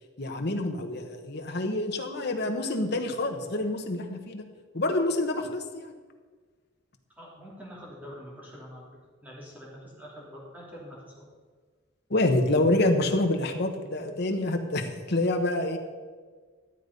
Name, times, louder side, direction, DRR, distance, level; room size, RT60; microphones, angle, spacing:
voice 1, 0.2-4.4 4.7-5.9 12.1-15.8, left 2 dB, 55° left, 5 dB, 1.2 m, -27 dB
voice 2, 7.2-8.9 9.2-11.3, equal, 10° right, -5 dB, 3.0 m, -45 dB
12.5 x 8.2 x 5.4 m, 1.5 s
head